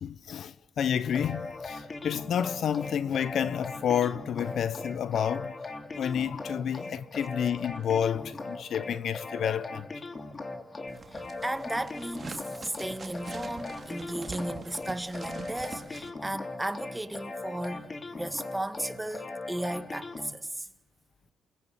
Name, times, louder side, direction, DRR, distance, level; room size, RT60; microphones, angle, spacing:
voice 1, 0.0-5.5 5.9-9.8, left 8 dB, 65° left, 1.1 m, -30 dB
sound 1, 1.0-20.3, left 3 dB, 30° left, 3.0 m, -40 dB
sound 2, 10.9-16.1, right 4 dB, 30° right, 2.8 m, -44 dB
voice 2, 11.1-17.8 18.1-20.7, right 1 dB, 10° right, 2.0 m, -35 dB
29.0 x 21.0 x 8.4 m
cardioid pair, 90°, 0 cm